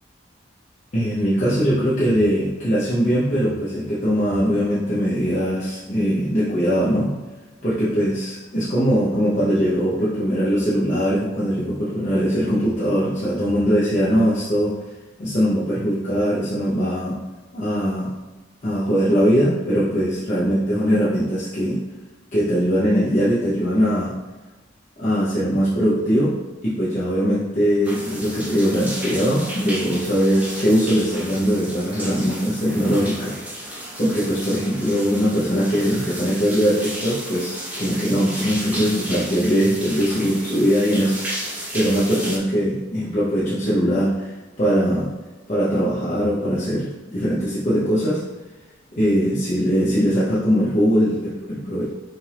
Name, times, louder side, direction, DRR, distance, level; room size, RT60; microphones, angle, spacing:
voice 1, 0.9-7.1 7.6-14.7 15.2-17.2 17.5-18.1 18.6-21.8 22.3-24.1 25.0-26.3 26.6-33.4 34.0-41.2 41.7-45.1 45.5-48.2 48.9-51.9, equal, 40° left, -10 dB, 0.9 m, -21 dB
sound 1, 27.8-42.4, right 1 dB, 10° right, 0.7 m, -33 dB
5.8 x 2.5 x 3.4 m, 1.2 s
head